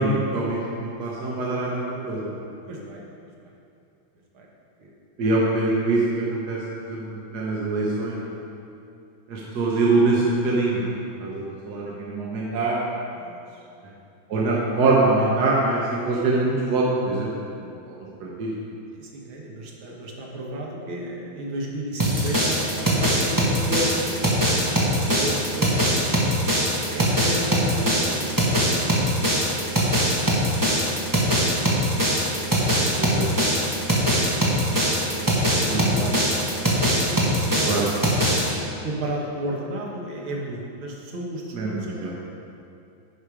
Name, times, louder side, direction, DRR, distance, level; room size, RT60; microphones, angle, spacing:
voice 1, 0.0-2.3 5.2-6.6 6.8-8.3 9.3-10.9 11.2-12.8 14.3-17.3 18.2-18.5 30.7-30.9 32.8-33.3 35.7-35.9 37.6-37.8 41.5-42.1, right 2 dB, 55° right, -5 dB, 1.5 m, -24 dB
voice 2, 2.7-3.0 3.4-3.5 4.3-4.5 4.8-4.9 13.2-14.0 18.9-24.3 25.0-26.0 26.9-28.9 34.7-38.3 38.8-42.1, right 1 dB, 75° right, -2 dB, 2.1 m, -33 dB
sound 1, 22.0-38.5, equal, 10° right, 1.0 m, -22 dB
11.0 x 5.2 x 4.9 m, 2.6 s
omnidirectional pair, 2.3 m